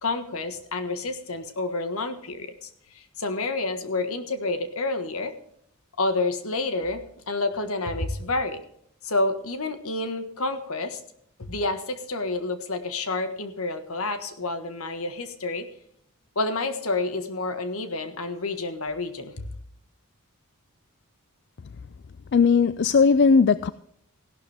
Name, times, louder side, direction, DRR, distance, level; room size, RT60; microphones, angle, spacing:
voice 1, 0.0-5.3 6.0-8.6 9.0-11.0 11.4-15.7 16.3-19.5, left 2 dB, 70° left, 1.5 m, -29 dB
voice 2, 22.3-23.7, left 5 dB, 50° left, 0.4 m, -18 dB
16.0 x 12.0 x 3.5 m
head